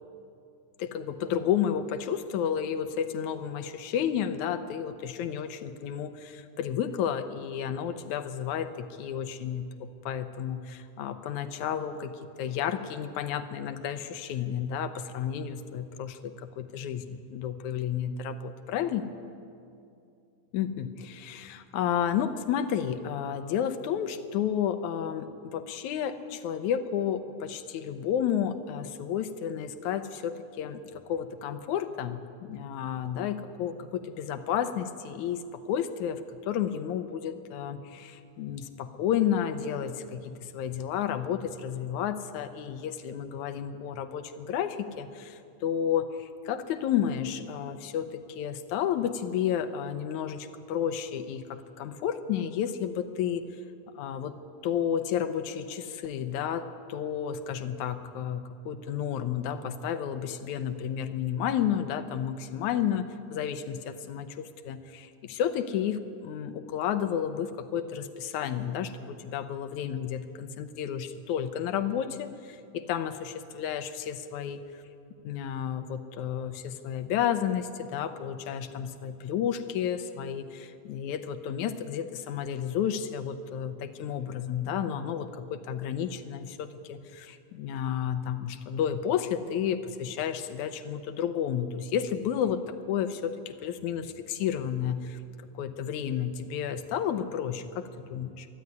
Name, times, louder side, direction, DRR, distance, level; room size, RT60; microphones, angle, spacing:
voice 1, 0.8-19.1 20.5-53.5 53.9-54.4 54.6-63.1 63.3-74.6 75.2-95.2 95.5-98.5, left 9 dB, 75° left, 10 dB, 2.1 m, -31 dB
22.5 x 13.0 x 9.6 m, 2.5 s
omnidirectional pair, 3.7 m